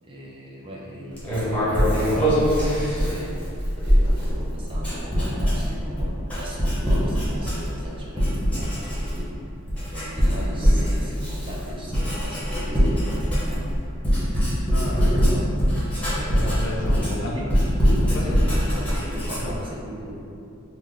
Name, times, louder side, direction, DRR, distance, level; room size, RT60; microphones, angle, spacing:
voice 1, 0.0-3.4 3.8-9.3 9.9-13.7 16.4-17.4 18.0-20.2, equal, 25° right, -4 dB, 0.5 m, -37 dB
Writing, 1.2-7.9 8.2-9.3 9.7-19.6, equal, 5° left, 0.8 m, -22 dB
voice 2, 14.7-15.4 16.1-17.3 18.1-18.2 19.4-19.6, left 1 dB, 65° left, -2 dB, 0.5 m, -32 dB
3.4 x 2.1 x 3.7 m, 2.6 s
head